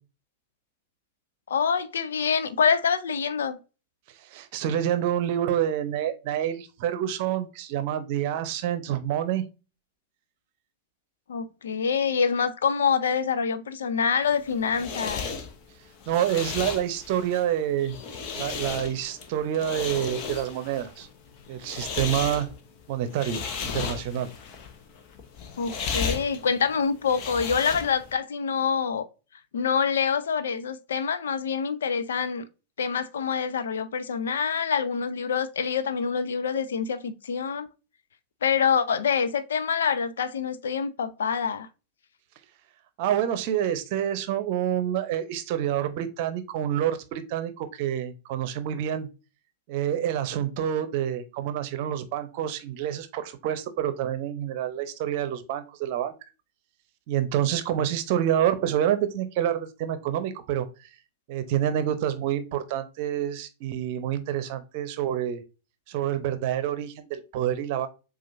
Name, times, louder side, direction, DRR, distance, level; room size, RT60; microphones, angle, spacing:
voice 1, 1.5-3.6 11.3-15.3 25.6-29.1 29.5-32.5 32.8-37.7 38.4-41.7, left 6 dB, 65° left, 0.5 m, -26 dB
voice 2, 4.3-9.4 16.1-18.0 18.3-21.1 21.5-22.5 22.9-23.4 23.7-24.3 43.0-49.1 49.7-56.1 57.1-60.7 61.3-65.4 65.9-67.9, right 10 dB, 50° right, 0.7 m, -27 dB
sound 1, 14.3-28.1, left 6 dB, 40° left, 0.9 m, -35 dB
7.4 x 2.5 x 2.6 m
figure-of-eight pair, 90°, 0 cm